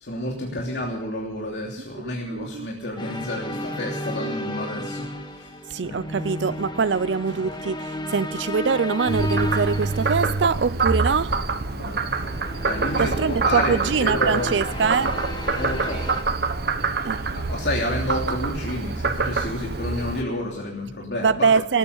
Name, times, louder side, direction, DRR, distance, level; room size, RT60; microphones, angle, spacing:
voice 1, 0.0-5.1 5.8-6.0 11.8-12.0 12.6-14.5 15.5-16.0 17.3-21.5, left 1 dB, 70° left, 3.1 m, -30 dB
voice 2, 2.3-2.7 5.7-11.4 12.9-15.2 17.1-17.2 21.2-21.8, right 5 dB, 85° right, 0.5 m, -23 dB
sound 1, 3.0-11.2 12.0-16.2, left 1 dB, 25° left, 1.5 m, -33 dB
Frog, 9.1-20.2, right 4 dB, 60° right, 1.2 m, -26 dB
19.0 x 9.5 x 7.0 m
head